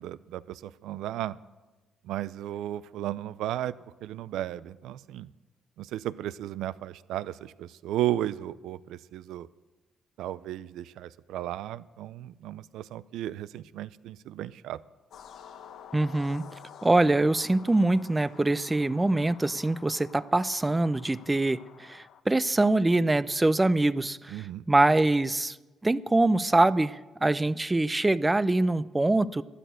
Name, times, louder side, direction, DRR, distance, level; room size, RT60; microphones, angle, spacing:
voice 1, 0.0-1.4 2.0-3.7 4.0-5.3 5.8-9.5 10.2-14.8 24.3-24.6, right 13 dB, 85° right, 17 dB, 0.5 m, -34 dB
sound 1, 15.1-22.2, left 8 dB, 70° left, 1.0 m, -50 dB
voice 2, 15.9-16.4 16.8-25.6 25.8-29.4, right 2 dB, 15° right, 17 dB, 0.5 m, -24 dB
12.5 x 10.5 x 9.2 m, 1.2 s
cardioid pair, 90°, 0 cm